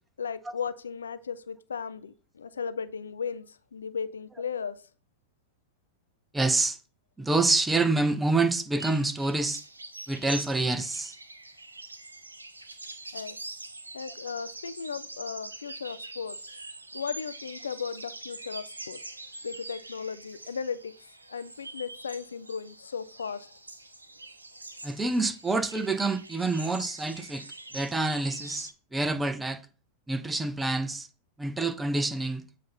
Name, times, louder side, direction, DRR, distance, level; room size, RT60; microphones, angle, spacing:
voice 1, 0.2-4.8 13.1-13.4 13.9-16.5 16.9-19.1 19.4-21.0 21.3-23.5, left 6 dB, 70° left, 0.4 m, -36 dB
voice 2, 6.3-6.8 7.2-9.6 10.1-11.1 24.8-27.5 27.7-29.6 30.1-31.1 31.4-32.5, right 3 dB, 10° right, 0.6 m, -27 dB
sound 1, 8.8-28.7, right 2 dB, 80° right, 0.6 m, -44 dB
7.6 x 2.7 x 5.6 m
figure-of-eight pair, 90°, 0 cm